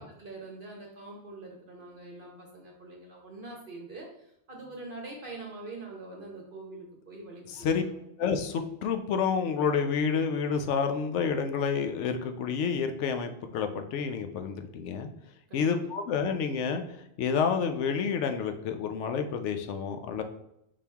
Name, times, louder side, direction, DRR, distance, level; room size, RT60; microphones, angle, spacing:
voice 1, 0.0-8.0 15.5-15.9, right 2 dB, 50° right, -1 dB, 1.0 m, -44 dB
voice 2, 7.5-7.8 8.2-15.1 15.5-16.8 17.2-20.2, left 6 dB, 85° left, 6 dB, 0.9 m, -29 dB
5.1 x 2.9 x 3.4 m, 0.79 s
omnidirectional pair, 1.2 m